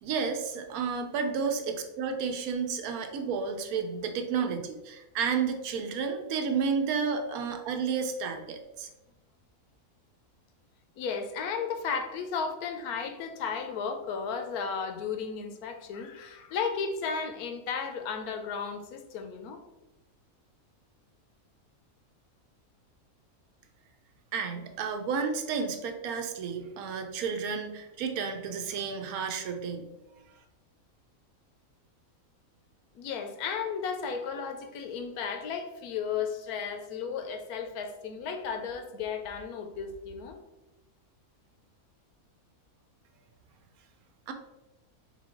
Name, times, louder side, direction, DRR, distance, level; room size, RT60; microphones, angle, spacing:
voice 1, 0.0-8.9 24.3-30.2 44.3-44.4, right 6 dB, 80° right, 5 dB, 1.1 m, -31 dB
voice 2, 11.0-19.6 32.9-40.4, left 6 dB, 85° left, 6 dB, 1.1 m, -34 dB
3.7 x 3.2 x 3.7 m, 0.99 s
omnidirectional pair, 1.5 m